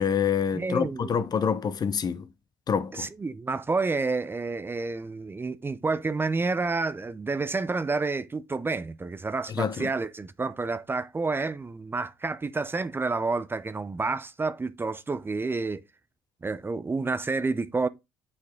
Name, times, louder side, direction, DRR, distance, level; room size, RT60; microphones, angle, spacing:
voice 1, 0.0-2.2 2.7-3.1 9.5-9.9, left 7 dB, 40° left, 1.0 m, -26 dB
voice 2, 0.5-1.2 2.9-15.8 16.4-17.9, right 3 dB, 20° right, 0.6 m, -29 dB
7.8 x 5.9 x 3.7 m
hypercardioid pair, 55°, 10 cm